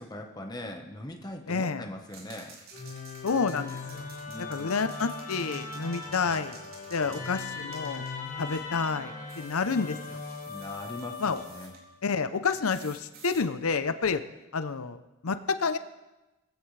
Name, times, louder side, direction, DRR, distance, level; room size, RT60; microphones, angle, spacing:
voice 1, 0.0-2.6 4.3-4.7 10.5-11.7, left 1 dB, 20° left, 3 dB, 1.2 m, -41 dB
voice 2, 1.5-1.8 3.2-4.1 4.4-6.6 6.9-8.0 8.4-10.2 11.2-11.4 12.0-14.2 14.5-15.8, left 5 dB, 90° left, 10 dB, 0.7 m, -29 dB
sound 1, 2.1-8.7 9.3-11.8 12.7-13.4, right 4 dB, 80° right, 3.8 m, -52 dB
Musical instrument, 2.7-11.9, left 4 dB, 40° left, 2.1 m, -39 dB
19.5 x 15.5 x 3.4 m, 1.0 s
head